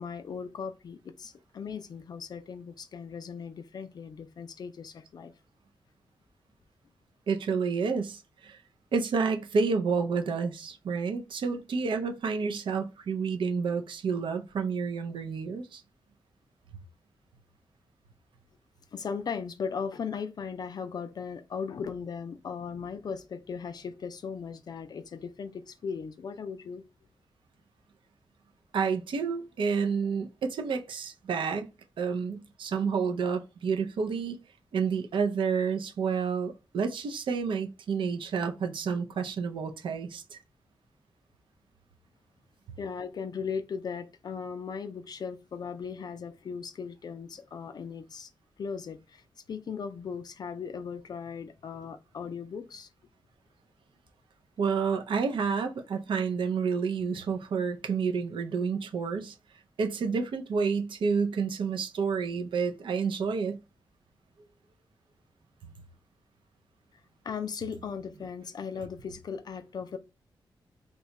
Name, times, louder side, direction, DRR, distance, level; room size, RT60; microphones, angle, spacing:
voice 1, 0.0-5.3 18.9-26.8 42.8-48.3 48.6-49.2 49.5-52.9 67.2-70.0, left 6 dB, 50° left, 0.3 m, -37 dB
voice 2, 7.3-8.6 8.9-15.8 28.7-31.7 32.0-34.4 34.7-40.4 54.6-59.4 59.8-63.6, right 5 dB, 75° right, 0.5 m, -29 dB
2.8 x 2.2 x 3.9 m
wide cardioid pair, 140°, 9 cm